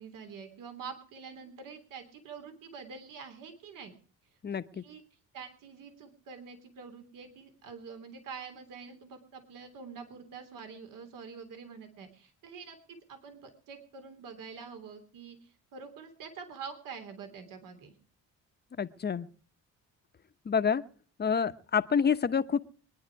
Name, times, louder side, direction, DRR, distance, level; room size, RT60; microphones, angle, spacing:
voice 1, 0.0-3.9 4.7-5.0 5.3-17.9, right 5 dB, 70° right, 6 dB, 3.3 m, -46 dB
voice 2, 4.4-4.8 18.8-19.3 20.4-20.8 21.2-22.6, left 6 dB, 30° left, 11 dB, 1.0 m, -28 dB
23.5 x 10.5 x 4.7 m, 0.43 s
cardioid pair, 110°, 33 cm